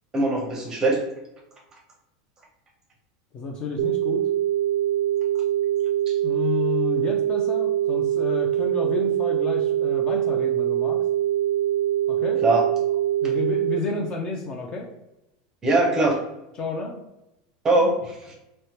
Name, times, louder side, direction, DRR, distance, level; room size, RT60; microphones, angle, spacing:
voice 1, 0.1-1.0 6.1-6.2 12.4-12.7 15.6-16.2 17.6-18.4, right 2 dB, 15° right, 0 dB, 0.6 m, -21 dB
voice 2, 3.3-4.3 6.2-11.0 12.1-12.4 13.2-14.9 16.6-17.0, left 4 dB, 25° left, 2 dB, 0.4 m, -31 dB
sound 1, 3.8-13.8, right 12 dB, 55° right, 0.3 m, -23 dB
3.2 x 2.1 x 2.8 m, 0.90 s
supercardioid pair, 160°, 3 cm